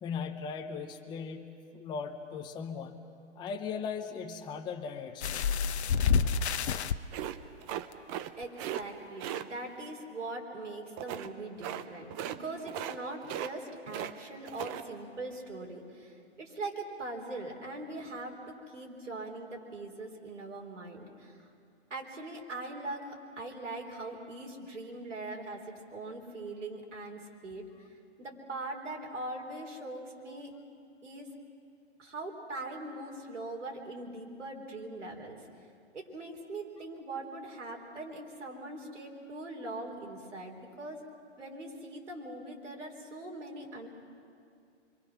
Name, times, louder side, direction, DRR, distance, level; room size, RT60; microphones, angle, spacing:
voice 1, 0.0-3.0 3.4-5.4, left 6 dB, 10° left, 4 dB, 0.8 m, -38 dB
sound 1, 5.2-7.0 7.9-8.0 8.4-8.5, left 6 dB, 65° left, 0.9 m, -28 dB
sound 2, 7.1-8.3 8.6-8.8 9.2-9.4 11.0-11.3 11.6-11.8 12.1-12.4 12.7-13.0 13.2-14.1 14.4-14.8, right 11 dB, 20° right, 0.6 m, -37 dB
voice 2, 8.4-21.4 21.9-27.6 28.2-30.5 31.0-31.3 32.0-35.4 35.9-41.0 41.4-43.9, right 2 dB, 90° right, 1 dB, 4.2 m, -41 dB
27.0 x 23.5 x 6.2 m, 2.4 s
hypercardioid pair, 135°, 35 cm